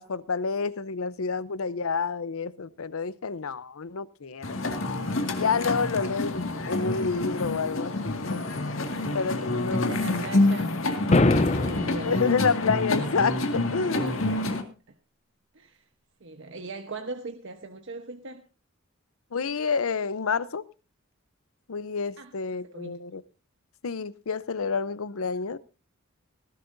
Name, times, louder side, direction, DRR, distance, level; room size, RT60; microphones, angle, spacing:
voice 1, 0.0-4.6 5.3-8.3 9.1-10.0 12.0-14.1 19.3-20.6 21.7-23.2 23.8-25.6, left 5 dB, 80° left, 0.7 m, -29 dB
sound 1, 4.4-14.6, left 2 dB, 65° left, 2.0 m, -28 dB
voice 2, 9.5-12.3 13.9-14.4 14.9-15.0 15.5-15.8 16.2-18.4 22.2-22.3 22.7-23.0, right 2 dB, 60° right, 1.1 m, -40 dB
sound 2, 11.1-12.1, left 2 dB, 30° left, 0.7 m, -22 dB
19.0 x 15.5 x 2.7 m
head